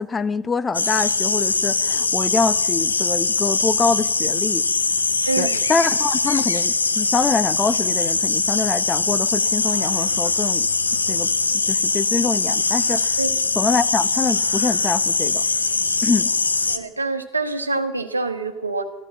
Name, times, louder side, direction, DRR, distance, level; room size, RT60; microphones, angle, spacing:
voice 1, 0.0-4.6 5.4-10.7 11.1-11.3 11.7-13.2 13.6-15.4 16.0-16.3, left 4 dB, 25° left, 14 dB, 0.8 m, -24 dB
sound 1, 0.7-16.8, left 4 dB, 90° left, 0.7 m, -21 dB
voice 2, 5.3-5.6 13.2-13.3 16.7-18.8, right 3 dB, 90° right, 8 dB, 1.1 m, -25 dB
14.0 x 13.0 x 7.1 m, 1.1 s
figure-of-eight pair, 70°, 0 cm